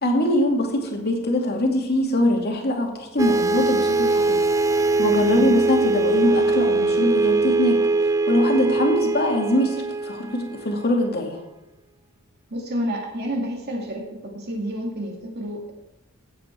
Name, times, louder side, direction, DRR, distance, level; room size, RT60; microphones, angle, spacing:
voice 1, 0.0-4.4 4.7-11.4, left 1 dB, 50° left, 1 dB, 2.4 m, -23 dB
sound 1, 3.2-10.9, right 3 dB, 15° right, 0.4 m, -21 dB
voice 2, 12.5-14.0 14.3-15.7, equal, 50° right, 0 dB, 2.3 m, -29 dB
16.0 x 8.3 x 4.6 m, 1.0 s
head